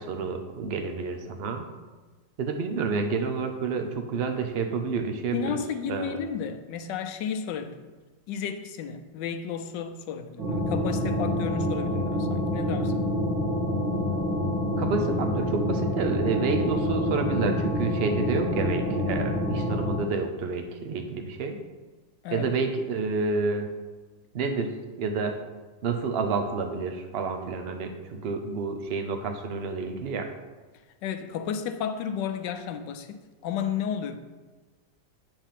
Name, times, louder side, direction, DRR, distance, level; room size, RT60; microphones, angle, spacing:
voice 1, 0.0-1.7 2.4-5.6 5.9-6.2 14.8-21.6 22.3-23.7 24.3-25.4 25.8-30.3, right 4 dB, 70° right, 5 dB, 0.5 m, -29 dB
voice 2, 5.3-7.9 8.3-13.1 22.2-22.5 31.0-34.2, left 7 dB, 75° left, 8 dB, 1.2 m, -33 dB
sound 1, 10.4-20.0, left 1 dB, 90° right, 2.1 m, -27 dB
9.0 x 3.5 x 5.7 m, 1.3 s
omnidirectional pair, 2.0 m